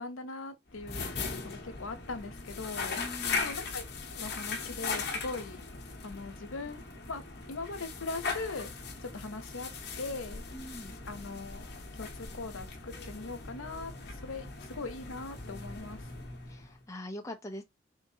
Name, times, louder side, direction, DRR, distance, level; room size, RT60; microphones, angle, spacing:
voice 1, 0.0-3.0 3.4-3.8 4.1-5.7 6.0-7.2 7.5-8.7 9.0-9.7 10.0-10.4 11.0-11.7 12.0-16.1, left 3 dB, 90° left, 0.9 m, -40 dB
sound 1, 0.7-16.8, left 4 dB, 50° left, 0.9 m, -39 dB
voice 2, 3.0-3.6 10.5-10.9 16.5-17.6, left 1 dB, 15° left, 0.7 m, -42 dB
4.0 x 3.6 x 2.8 m
head